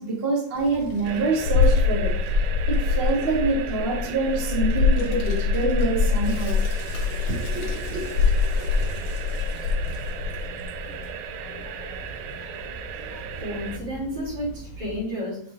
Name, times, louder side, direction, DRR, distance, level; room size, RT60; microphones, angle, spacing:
voice 1, 0.0-6.9 7.3-8.0, right 3 dB, 35° right, -2 dB, 1.0 m, -26 dB
Child speech kid speaking, 0.5-15.0, left 5 dB, 80° left, 2.8 m, -26 dB
sound 1, 1.0-13.8, right 7 dB, 90° right, 1.3 m, -36 dB
Water / Toilet flush, 5.8-10.9, left 4 dB, 55° left, 2.2 m, -45 dB
voice 2, 13.4-15.4, equal, 50° right, -6 dB, 3.8 m, -31 dB
8.5 x 4.8 x 2.5 m, 0.64 s
omnidirectional pair, 3.4 m